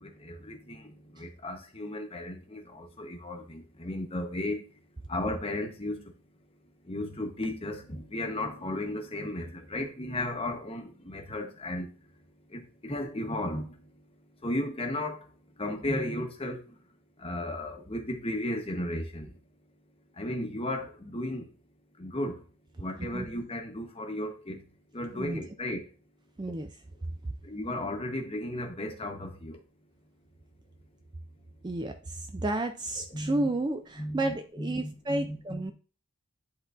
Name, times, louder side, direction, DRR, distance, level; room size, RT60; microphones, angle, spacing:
voice 1, 0.0-4.6 5.1-6.0 6.9-11.9 12.5-13.8 14.4-15.2 15.6-16.6 17.2-19.3 20.2-21.5 22.0-22.4 22.8-24.6 24.9-25.9 27.4-29.6 33.1-33.5 34.0-35.7, left 1 dB, 25° left, 1.0 m, -35 dB
voice 2, 31.6-35.7, right 2 dB, 20° right, 0.4 m, -32 dB
10.5 x 3.8 x 2.4 m
head